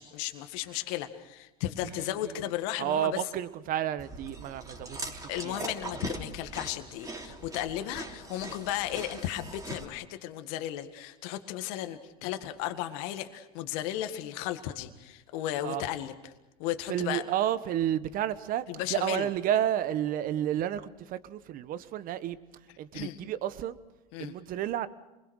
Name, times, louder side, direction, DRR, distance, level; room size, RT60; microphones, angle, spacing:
voice 1, 0.0-3.2 5.3-16.1 16.6-17.2 18.7-19.3 22.9-23.2 24.1-24.3, left 13 dB, 65° left, 8 dB, 1.9 m, -35 dB
voice 2, 2.8-5.6 15.6-15.8 16.9-22.4 22.8-23.8 24.2-24.9, right 11 dB, 45° right, 14 dB, 1.3 m, -31 dB
Chewing mastication, 4.0-9.8, right 2 dB, 15° right, 3.3 m, -41 dB
28.0 x 21.5 x 6.5 m, 1.0 s
supercardioid pair, 110°, 20 cm